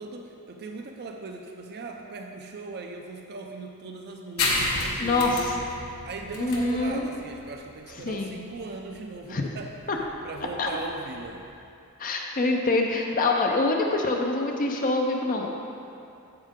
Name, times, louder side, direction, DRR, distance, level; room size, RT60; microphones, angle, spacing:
voice 1, 0.0-5.7 6.1-9.8 10.2-11.5, right 3 dB, 45° right, 3 dB, 0.5 m, -39 dB
sound 1, 4.4-11.5, left 2 dB, 75° left, 1.3 m, -32 dB
voice 2, 5.0-5.5 6.4-7.1 8.0-8.4 9.3-9.5 9.9-10.0 10.6-10.7 12.0-15.5, left 2 dB, 40° left, 1 dB, 0.6 m, -25 dB
8.9 x 7.3 x 3.7 m, 2.7 s
head